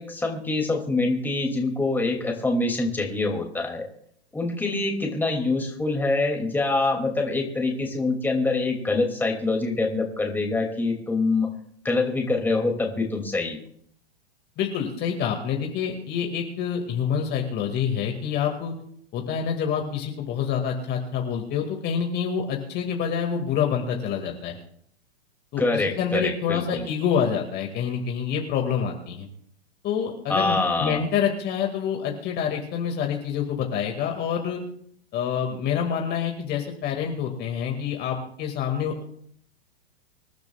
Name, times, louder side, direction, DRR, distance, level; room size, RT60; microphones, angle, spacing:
voice 1, 0.0-3.9 4.3-11.5 11.8-13.6 25.6-26.9 30.3-31.0, left 3 dB, 5° left, 1 dB, 2.6 m, -25 dB
voice 2, 14.6-18.8 19.1-24.6 25.5-29.3 29.8-34.6 35.1-39.0, left 7 dB, 30° left, 2 dB, 2.2 m, -27 dB
26.0 x 12.0 x 2.4 m, 0.65 s
hypercardioid pair, 110°, 32 cm